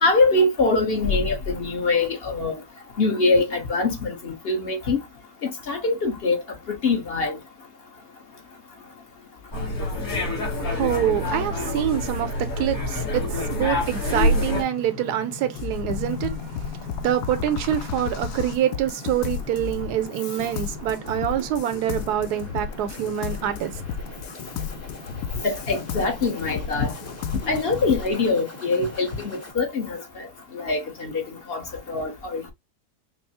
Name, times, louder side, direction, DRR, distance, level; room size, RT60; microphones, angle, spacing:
voice 1, 0.0-2.6 3.0-5.0 5.4-6.4 6.7-7.4 25.3-26.9 27.4-30.3 30.5-31.2 31.5-32.5, left 3 dB, 45° left, 0.9 m, -23 dB
sound 1, 9.5-14.6, left 1 dB, 65° left, 2.4 m, -26 dB
voice 2, 10.2-23.8, right 11 dB, 80° right, 1.2 m, -26 dB
sound 2, 13.0-29.5, left 2 dB, 15° left, 0.7 m, -43 dB
sound 3, 15.6-28.1, left 7 dB, 80° left, 1.1 m, -34 dB
5.4 x 2.0 x 2.8 m
omnidirectional pair, 1.7 m